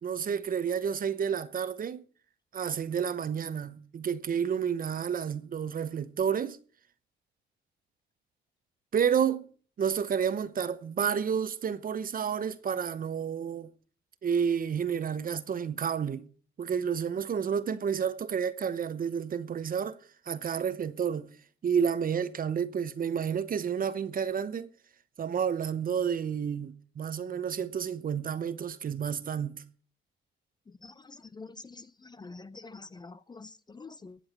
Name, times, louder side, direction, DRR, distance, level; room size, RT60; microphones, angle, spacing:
voice 1, 0.0-2.0 2.5-6.6 8.9-9.5 9.8-13.7 14.2-16.2 16.6-20.0 20.3-21.3 21.6-24.7 25.2-29.6, right 7 dB, 45° right, 0.9 m, -30 dB
voice 2, 30.8-34.2, left 3 dB, 20° left, 0.5 m, -47 dB
19.5 x 7.9 x 4.3 m
cardioid pair, 90°, 20 cm